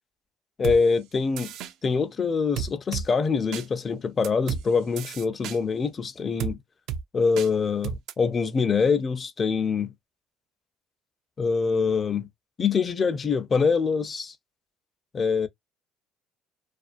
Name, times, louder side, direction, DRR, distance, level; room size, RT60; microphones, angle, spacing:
voice 1, 0.6-1.5 1.8-6.6 7.1-9.9 11.4-12.3 12.6-14.3 15.1-15.5, left 5 dB, 35° left, 0.4 m, -24 dB
sound 1, 0.6-0.8 1.4-1.7 2.6-3.1 3.5-3.7 4.2-4.6 5.0-5.6 6.4-6.5 6.9-7.0 7.4-7.5 7.8-8.1, right 8 dB, 70° right, 0.3 m, -31 dB
2.4 x 2.1 x 2.4 m
supercardioid pair, 85°, 0 cm